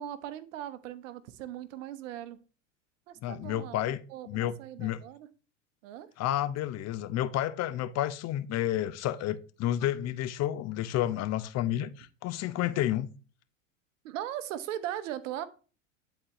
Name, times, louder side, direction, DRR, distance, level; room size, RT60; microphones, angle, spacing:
voice 1, 0.0-2.4 3.1-5.3 5.8-6.1 14.0-15.5, right 11 dB, 70° right, 0.9 m, -39 dB
voice 2, 3.2-4.0 4.3-5.0 6.2-13.1, left 12 dB, 40° left, 0.7 m, -30 dB
9.8 x 4.3 x 2.9 m
hypercardioid pair, 85°, 40 cm